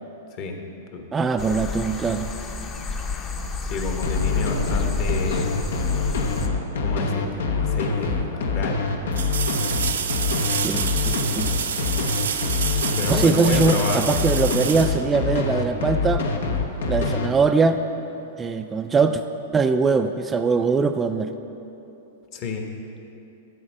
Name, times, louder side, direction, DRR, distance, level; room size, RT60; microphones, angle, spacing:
voice 1, 1.1-2.3 10.6-11.5 13.1-16.2 16.9-17.8 18.4-19.2 19.5-21.3, right 4 dB, 15° right, 7 dB, 0.3 m, -21 dB
sound 1, 1.4-6.5, left 4 dB, 30° left, 0.7 m, -30 dB
voice 2, 3.6-5.6 6.8-8.8 9.1-9.2 12.9-14.1 22.3-22.6, left 4 dB, 45° left, 3 dB, 1.2 m, -30 dB
sound 2, 4.0-17.3, left 4 dB, 80° left, 0.9 m, -25 dB
sound 3, 7.7-7.8 9.1-15.7 18.6-18.7, right 7 dB, 85° right, 0.6 m, -28 dB
12.5 x 4.4 x 6.2 m, 2.9 s
hypercardioid pair, 120°, 0 cm